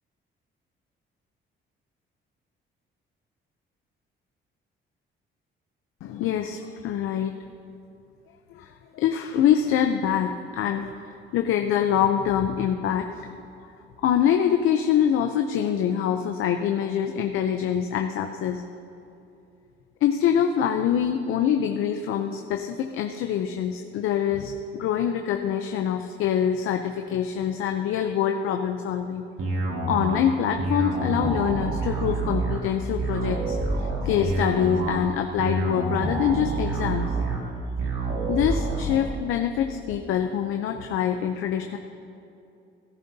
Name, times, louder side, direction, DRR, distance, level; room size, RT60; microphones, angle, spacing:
voice 1, 6.0-7.3 8.5-13.4 14.0-18.6 20.0-29.3 29.9-37.1 38.3-41.8, left 9 dB, 85° left, 6 dB, 0.6 m, -25 dB
sound 1, 29.4-39.0, right 3 dB, 80° right, 2.0 m, -27 dB
17.0 x 10.5 x 2.7 m, 2.7 s
cardioid pair, 110°, 21 cm